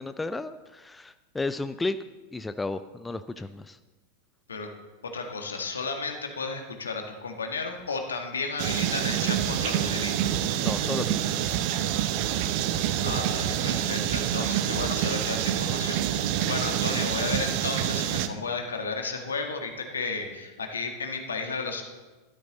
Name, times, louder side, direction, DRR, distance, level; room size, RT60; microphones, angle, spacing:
voice 1, 0.0-2.0 2.3-3.8 10.6-11.1 11.3-11.7 12.0-12.1, left 3 dB, 10° left, 12 dB, 0.5 m, -33 dB
voice 2, 5.0-10.3 13.0-21.8, left 4 dB, 70° left, 4 dB, 1.9 m, -33 dB
sound 1, 8.6-18.3, right 11 dB, 45° right, 0.9 m, -27 dB
13.5 x 13.0 x 4.0 m, 1.2 s
figure-of-eight pair, 90°, 0 cm